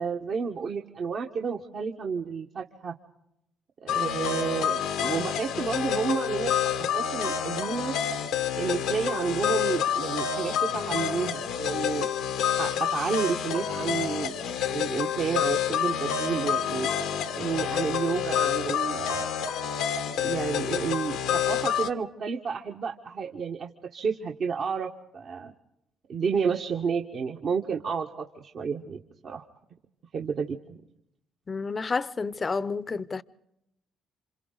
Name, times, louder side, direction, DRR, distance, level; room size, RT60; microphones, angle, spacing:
voice 1, 0.0-2.9 3.8-6.5 6.8-8.0 8.5-12.1 12.5-14.3 14.7-16.9 17.3-19.3 20.2-25.5 26.1-29.4 30.1-30.8, right 6 dB, 55° right, 1.4 m, -31 dB
sound 1, 3.9-21.9, left 8 dB, 75° left, 1.1 m, -28 dB
voice 2, 31.5-33.2, left 4 dB, 35° left, 0.7 m, -30 dB
29.0 x 26.5 x 4.0 m
hypercardioid pair, 55°, 0 cm